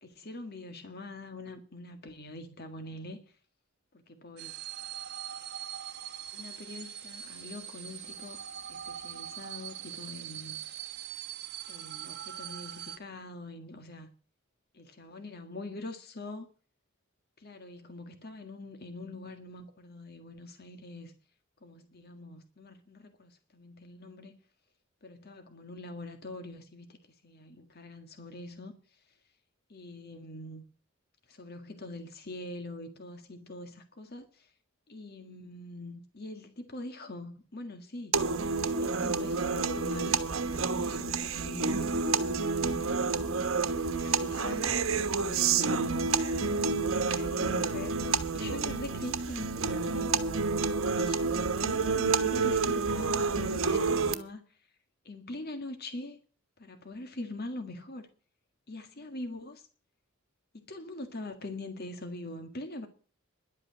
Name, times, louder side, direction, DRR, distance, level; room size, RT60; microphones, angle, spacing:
voice 1, 0.0-3.2 4.1-4.5 6.3-8.4 8.7-10.6 11.7-14.1 15.0-16.5 17.4-21.2 21.6-24.4 25.0-27.0 27.2-28.7 29.7-30.6 31.3-34.5 34.9-38.1 38.8-42.3 42.6-43.0 43.9-46.7 47.1-50.1 51.0-54.6 55.0-56.2 56.6-58.1 58.7-59.7 60.7-62.9, left 2 dB, 50° left, 1.8 m, -43 dB
sound 1, 4.4-13.0, right 10 dB, 55° right, 1.2 m, -42 dB
sound 2, 38.1-54.1, right 4 dB, 75° right, 1.2 m, -29 dB
11.5 x 8.6 x 7.5 m
head